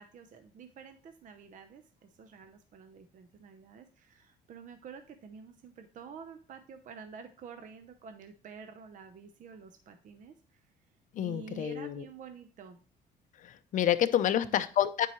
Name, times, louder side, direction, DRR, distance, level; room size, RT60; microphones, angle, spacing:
voice 1, 0.0-10.6 11.2-12.8 14.1-14.5, right 6 dB, 50° right, 7 dB, 0.7 m, -49 dB
voice 2, 11.1-12.0 13.4-15.1, left 11 dB, 50° left, 10 dB, 0.6 m, -28 dB
9.2 x 4.6 x 3.1 m, 0.39 s
cardioid pair, 110°, 17 cm